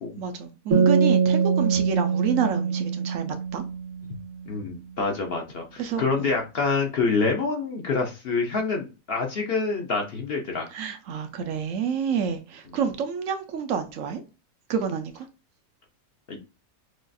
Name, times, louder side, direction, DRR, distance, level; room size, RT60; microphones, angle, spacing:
voice 1, 0.2-3.6 5.8-6.3 10.7-14.2 14.7-15.3, right 7 dB, 70° right, 0.9 m, -29 dB
sound 1, 0.7-4.2, right 6 dB, 90° right, 2.1 m, -23 dB
voice 2, 4.5-10.7 16.3-16.4, left 4 dB, 55° left, 0.8 m, -27 dB
6.3 x 2.4 x 2.6 m
omnidirectional pair, 1.5 m